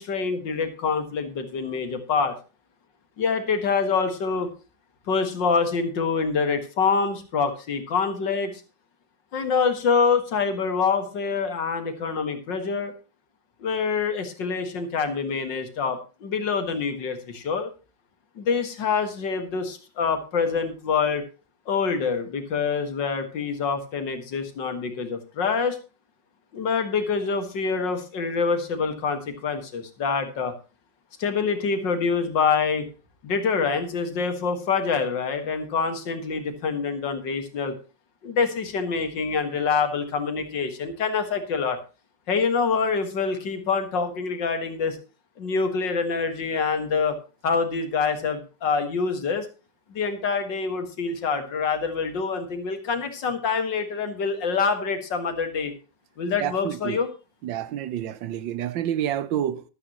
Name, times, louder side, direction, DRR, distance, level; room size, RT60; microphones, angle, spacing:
voice 1, 0.0-2.3 3.2-4.5 5.1-8.6 9.3-12.9 13.6-17.7 18.4-21.2 21.7-25.8 26.5-30.5 31.2-32.9 33.2-37.8 38.2-41.8 42.3-45.0 45.4-47.2 47.4-49.5 49.9-55.7 56.2-57.1, left 5 dB, 75° left, 2.3 m, -26 dB
voice 2, 56.4-57.0 57.4-59.6, right 10 dB, 85° right, 1.6 m, -28 dB
13.0 x 12.5 x 3.0 m
omnidirectional pair, 2.0 m